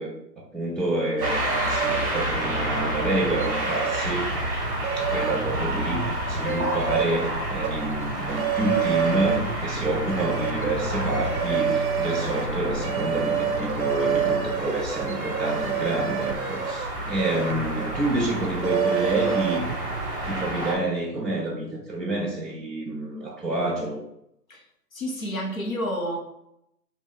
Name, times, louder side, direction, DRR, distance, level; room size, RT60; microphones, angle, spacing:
voice 1, 0.0-4.3 5.0-19.6 20.2-24.0, right 2 dB, ahead, -6 dB, 0.4 m, -28 dB
sound 1, 1.2-20.7, equal, 35° right, 1.4 m, -30 dB
sound 2, 1.2-20.6, right 7 dB, 60° right, 0.5 m, -29 dB
voice 2, 24.9-26.2, equal, 55° left, 1 dB, 1.1 m, -29 dB
4.2 x 2.6 x 3.8 m, 0.79 s
hypercardioid pair, 180°, 49 cm